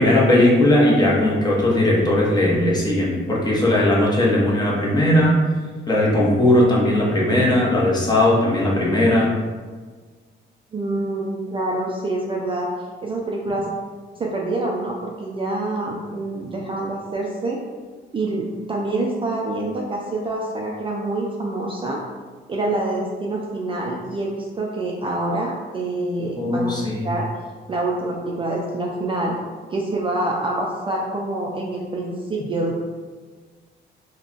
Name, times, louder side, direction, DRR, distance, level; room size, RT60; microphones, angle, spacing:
voice 1, 0.0-5.4 5.9-9.3 26.4-27.0, left 1 dB, 20° left, -4 dB, 0.8 m, -18 dB
voice 2, 10.7-12.7 13.0-13.7 14.2-17.6 18.1-22.0 22.5-26.8 27.0-27.3 27.7-29.4 29.7-32.8, right 2 dB, 25° right, -2 dB, 0.3 m, -26 dB
2.3 x 2.2 x 3.8 m, 1.4 s
cardioid pair, 90°, 20 cm